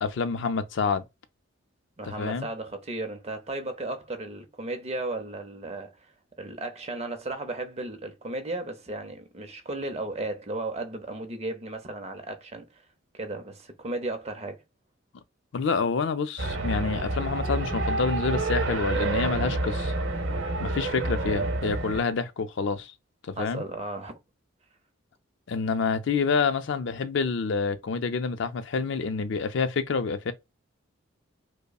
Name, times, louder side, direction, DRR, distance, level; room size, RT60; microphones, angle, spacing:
voice 1, 0.0-1.0 2.0-2.5 15.5-19.9 20.6-22.9 23.2-23.6 25.5-30.3, left 5 dB, 60° left, 0.4 m, -28 dB
voice 2, 2.0-6.0 6.4-12.8 13.1-14.6 23.4-24.2, right 2 dB, 30° right, 0.6 m, -35 dB
sound 1, 16.4-22.0, right 2 dB, 70° right, 0.9 m, -28 dB
5.2 x 2.0 x 2.3 m
head